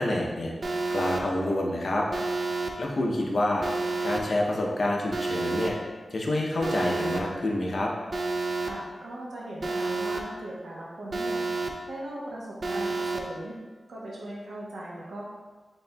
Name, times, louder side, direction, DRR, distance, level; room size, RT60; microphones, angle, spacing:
voice 1, 0.0-2.1 2.8-3.7 4.0-5.8 6.1-7.9, left 1 dB, 55° left, -1 dB, 0.6 m, -27 dB
Alarm, 0.6-1.2 2.1-2.7 3.6-4.2 5.1-5.7 6.6-7.2 8.1-8.7 9.6-10.2 11.1-11.7 12.6-13.2, right 3 dB, 50° right, 0.3 m, -29 dB
voice 2, 8.6-11.4 11.9-13.6 13.9-15.2, right 1 dB, 85° right, -5 dB, 0.9 m, -39 dB
4.2 x 3.4 x 2.2 m, 1.4 s
wide cardioid pair, 110°, 0 cm